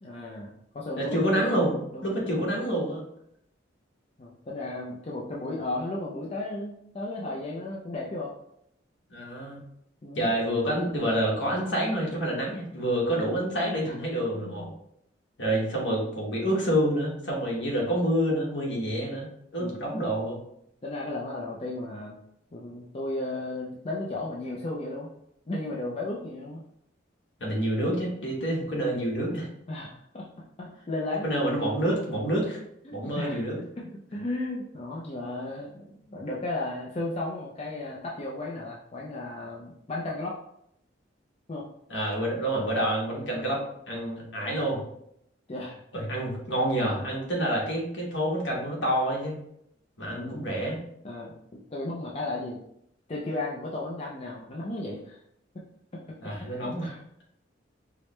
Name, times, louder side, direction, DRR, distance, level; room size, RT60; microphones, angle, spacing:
voice 1, 0.0-2.5 4.2-8.3 10.0-10.3 13.8-14.0 14.3-14.8 15.5-15.7 19.6-19.8 20.8-22.2 22.5-25.1 25.5-26.6 29.7-30.3 30.6-31.3 32.8-33.4 33.8-40.4 41.5-41.6 45.5-46.0 50.1-50.5 51.0-52.6 53.1-55.2 55.5-55.6 55.9-56.0 56.4-57.0, left 2 dB, 30° left, -3 dB, 0.5 m, -35 dB
voice 2, 1.0-3.0 9.1-9.6 10.1-14.7 15.4-20.4 27.4-29.5 31.2-32.6 32.9-33.6 41.9-44.8 45.9-49.3 50.0-50.8 56.2-56.9, right 1 dB, 70° left, -3 dB, 1.2 m, -28 dB
4.7 x 2.1 x 3.0 m, 0.74 s
head